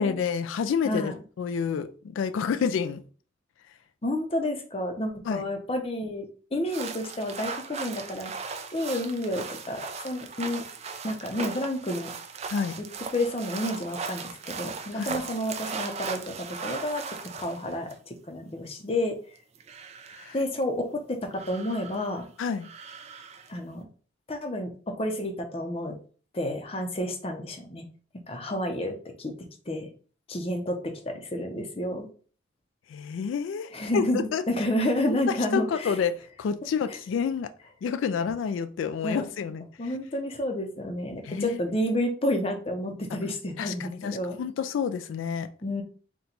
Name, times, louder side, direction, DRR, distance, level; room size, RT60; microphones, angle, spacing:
voice 1, 0.0-3.0 5.3-5.4 12.5-12.8 14.9-15.2 20.2-20.4 22.4-22.7 32.9-34.0 34.3-34.4 35.1-35.2 35.5-36.1 36.4-37.5 37.8-39.7 41.2-41.6 43.6-45.5, left 6 dB, 90° left, 10 dB, 0.3 m, -29 dB
voice 2, 0.8-1.2 4.0-6.3 6.5-8.3 8.7-10.7 11.0-12.1 12.8-12.9 13.1-19.2 20.3-22.3 23.5-23.9 24.3-26.0 26.3-27.9 28.3-29.9 30.3-32.1 33.7-36.0 36.9-37.0 39.0-39.3 39.8-44.4 45.6-45.8, left 1 dB, 30° left, 5 dB, 0.6 m, -30 dB
sound 1, 6.7-17.9 19.4-20.4 21.3-22.3 22.6-23.6, right 5 dB, 35° right, 0.4 m, -38 dB
4.3 x 2.2 x 3.9 m, 0.41 s
head